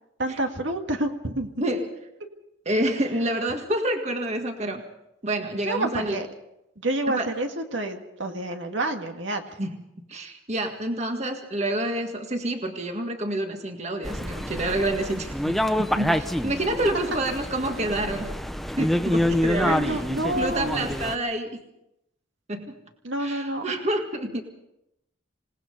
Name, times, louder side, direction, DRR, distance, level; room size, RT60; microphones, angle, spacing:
voice 1, 0.2-1.5 5.6-6.3 6.8-9.4 19.6-21.0 23.0-23.6, right 1 dB, 65° right, 4 dB, 2.0 m, -28 dB
voice 2, 2.7-4.8 5.2-6.2 7.1-7.3 9.6-9.8 10.1-18.3 18.8-21.6 22.5-22.8 23.2-24.4, right 1 dB, 35° right, 4 dB, 1.8 m, -28 dB
sound 1, 14.0-21.2, equal, ahead, 0.7 m, -27 dB
27.0 x 18.5 x 5.3 m, 0.85 s
head